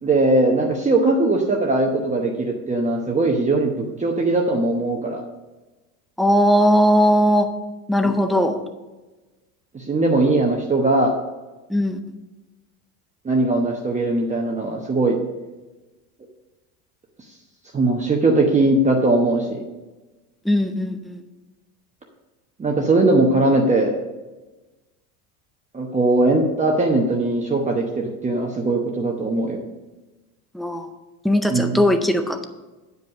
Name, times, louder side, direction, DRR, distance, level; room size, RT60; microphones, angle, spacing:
voice 1, 0.0-5.2 8.0-8.2 9.7-11.1 13.2-15.2 17.7-19.6 22.6-23.9 25.7-29.6 31.5-31.8, right 2 dB, 15° right, 0 dB, 0.9 m, -20 dB
voice 2, 6.2-7.5 7.9-8.6 11.7-12.0 20.5-21.2 30.5-30.9 31.2-32.4, equal, ahead, 7 dB, 0.4 m, -18 dB
9.3 x 5.2 x 6.6 m, 1.2 s
supercardioid pair, 120°, 47 cm